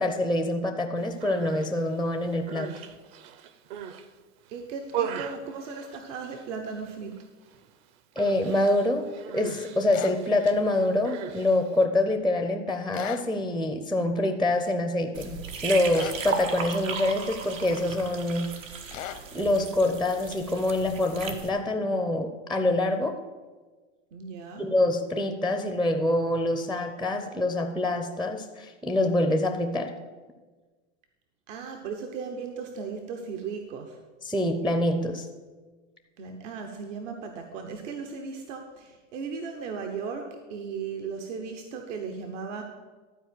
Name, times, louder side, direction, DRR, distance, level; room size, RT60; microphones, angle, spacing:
voice 1, 0.0-2.7 8.2-9.1 9.3-18.5 19.3-23.2 24.6-29.9 34.2-35.3, left 1 dB, ahead, 6 dB, 0.4 m, -26 dB
Human voice, 1.1-1.7 2.3-4.1 4.5-6.5 6.8-7.2 7.5-7.7 8.2-11.8, right 8 dB, 55° right, 0.9 m, -39 dB
voice 2, 4.5-7.3 24.1-24.7 31.5-34.0 36.2-42.6, right 5 dB, 70° right, 4 dB, 1.2 m, -36 dB
sound 1, 9.9-10.2 12.9-13.3 15.9-16.2 18.9-19.2, left 12 dB, 80° left, 0.9 m, -37 dB
sound 2, 15.1-21.5, right 6 dB, 85° right, 1.4 m, -36 dB
12.5 x 4.6 x 7.7 m, 1.4 s
supercardioid pair, 125°, 38 cm